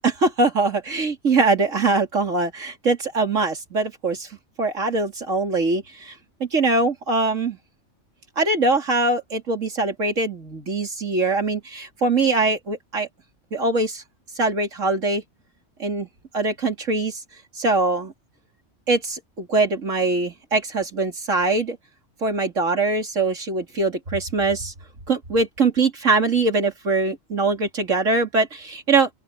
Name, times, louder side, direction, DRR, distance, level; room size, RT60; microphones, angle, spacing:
voice 1, 0.0-4.3 4.6-6.1 6.4-7.6 8.4-13.1 13.5-14.0 14.4-15.2 15.8-16.1 16.3-17.2 17.5-18.1 18.9-21.8 22.2-24.7 25.1-29.1, right 3 dB, 85° right, 3.3 m, -22 dB
open air
omnidirectional pair, 1.3 m